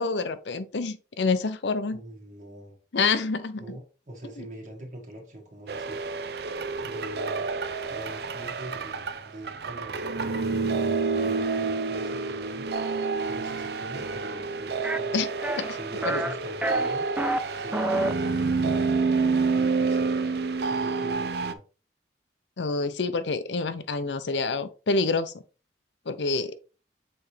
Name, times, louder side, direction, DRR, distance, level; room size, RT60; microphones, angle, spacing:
voice 1, 0.0-2.0 2.9-3.6 15.1-15.3 15.6-15.8 16.0-16.2 22.6-25.3 26.1-26.5, left 4 dB, 85° left, 0.7 m, -27 dB
voice 2, 1.9-2.8 3.6-6.4 6.8-7.5 7.9-10.6 11.2-12.7 13.3-15.2 15.7-17.1 17.5-19.0 19.5-21.6, right 1 dB, 45° right, 1.4 m, -43 dB
sound 1, 5.7-21.5, right 4 dB, 65° right, 0.5 m, -28 dB
sound 2, 14.8-15.0 15.4-15.7 16.0-16.3 16.6-17.4 17.7-18.1, right 1 dB, 10° right, 0.3 m, -27 dB
7.0 x 4.2 x 3.3 m
head